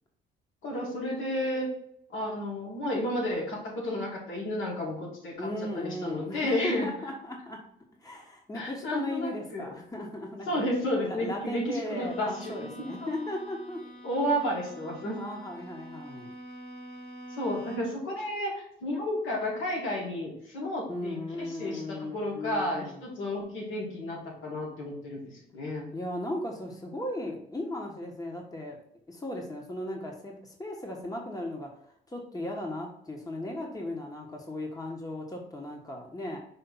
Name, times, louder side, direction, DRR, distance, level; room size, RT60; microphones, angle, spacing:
voice 1, 0.6-1.7 2.1-5.5 5.7-6.9 8.5-9.7 10.5-12.9 14.0-15.2 17.3-25.9, left 1 dB, 85° left, -4 dB, 2.6 m, -32 dB
voice 2, 5.4-7.6 8.0-10.6 11.0-13.8 15.1-16.3 20.9-23.0 25.9-28.8 29.1-36.4, left 1 dB, 20° left, 0 dB, 1.4 m, -36 dB
Bowed string instrument, 11.9-18.1, equal, 65° left, 2.0 m, -46 dB
5.6 x 3.3 x 5.6 m, 0.69 s
cardioid pair, 90°, 20 cm